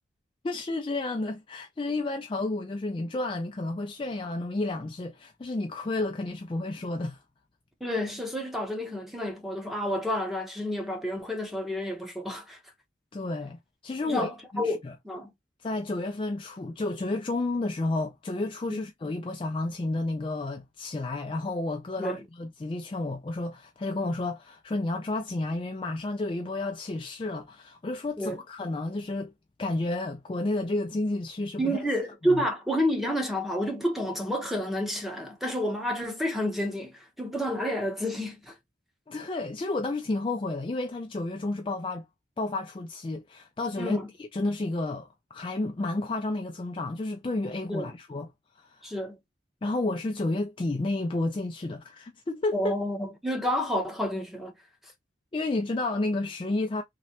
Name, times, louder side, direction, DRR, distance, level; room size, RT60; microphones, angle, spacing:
voice 1, 0.4-7.2 13.1-13.6 13.8-14.9 15.6-29.3 29.6-31.8 32.2-32.4 39.1-42.1 42.4-48.3 48.6-48.9 49.6-52.7 55.3-56.8, left 2 dB, 25° left, 0.3 m, -31 dB
voice 2, 7.8-12.6 14.1-15.3 18.7-18.8 22.0-22.2 28.2-28.4 31.6-38.5 43.8-44.1 47.7-47.9 48.8-49.2 52.5-54.5, equal, ahead, 0.8 m, -30 dB
3.1 x 2.8 x 2.8 m
head